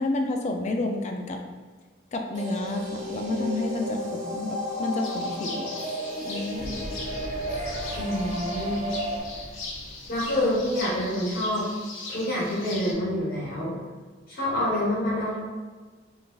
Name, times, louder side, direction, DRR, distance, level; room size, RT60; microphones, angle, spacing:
voice 1, 0.0-1.4 2.1-5.7 6.2-6.7, left 2 dB, 35° left, 3 dB, 0.3 m, -30 dB
sound 1, 2.3-9.2, equal, 40° right, 0.5 m, -33 dB
sound 2, 5.0-12.9, left 3 dB, 80° left, 0.6 m, -40 dB
sound 3, 6.6-11.3, equal, 5° left, 0.8 m, -41 dB
voice 2, 8.0-8.9 10.1-11.6 12.1-13.8 14.3-15.4, left 1 dB, 55° left, -8 dB, 1.0 m, -27 dB
3.8 x 2.6 x 2.3 m, 1.4 s
head